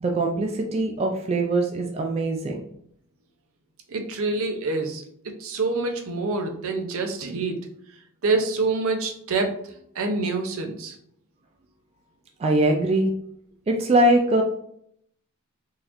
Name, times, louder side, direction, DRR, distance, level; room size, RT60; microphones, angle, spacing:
voice 1, 0.0-2.6 12.4-13.1 13.7-14.4, right 1 dB, 30° right, 1 dB, 0.3 m, -22 dB
voice 2, 3.9-7.7 8.2-9.5 9.9-10.9, right 3 dB, 65° right, 4 dB, 0.6 m, -26 dB
3.8 x 2.9 x 2.6 m, 0.68 s
head